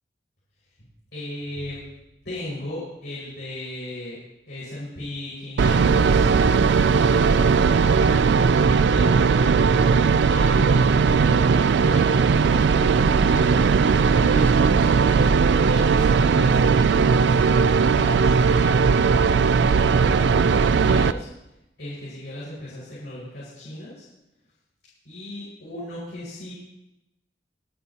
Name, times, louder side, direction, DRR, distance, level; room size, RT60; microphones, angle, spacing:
voice 1, 1.1-1.8 2.2-4.2 4.5-6.3 6.7-7.9 8.6-9.5 10.2-10.7 11.2-19.2 19.9-21.5 21.8-24.0 25.0-26.5, left 1 dB, 75° left, -8 dB, 5.6 m, -37 dB
sound 1, 5.6-21.1, right 5 dB, 80° right, 0.4 m, -18 dB
25.0 x 9.8 x 3.0 m, 0.92 s
head